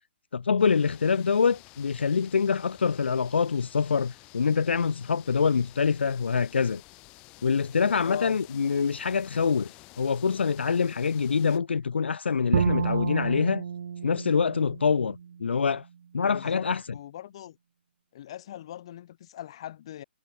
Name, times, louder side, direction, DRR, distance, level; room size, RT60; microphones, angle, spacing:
voice 1, 0.3-6.8 7.4-9.7 10.0-13.6 14.0-15.9 16.1-16.8, left 5 dB, 75° left, 0.9 m, -25 dB
sound 1, 0.6-11.6, left 25 dB, 15° left, 0.9 m, -52 dB
voice 2, 8.0-8.4 16.2-17.6 18.1-20.0, left 12 dB, 30° left, 2.9 m, -41 dB
Bowed string instrument, 12.5-15.6, right 7 dB, 45° right, 0.4 m, -30 dB
hypercardioid pair, 175°, 6 cm